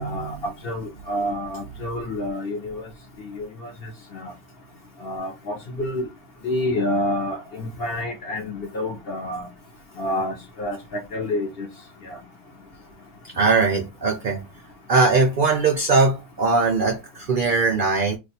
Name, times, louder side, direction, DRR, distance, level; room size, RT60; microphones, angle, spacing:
voice 1, 0.0-2.9 3.2-3.7 4.1-4.3 5.0-6.0 6.4-9.5 10.0-11.7 12.0-12.2, left 1 dB, 50° left, 0.8 m, -28 dB
voice 2, 13.3-14.4 14.9-18.2, right 4 dB, 65° right, 0.5 m, -20 dB
2.5 x 2.3 x 4.1 m
omnidirectional pair, 1.5 m